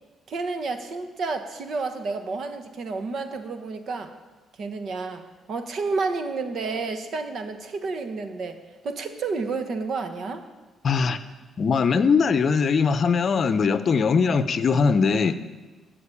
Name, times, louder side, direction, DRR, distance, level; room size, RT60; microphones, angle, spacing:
voice 1, 0.3-4.1 4.6-10.4, right 4 dB, 60° right, 7 dB, 1.2 m, -30 dB
voice 2, 10.8-11.2 11.6-15.4, left 5 dB, 50° left, 12 dB, 0.6 m, -21 dB
13.5 x 5.2 x 8.5 m, 1.3 s
cardioid pair, 90°, 0 cm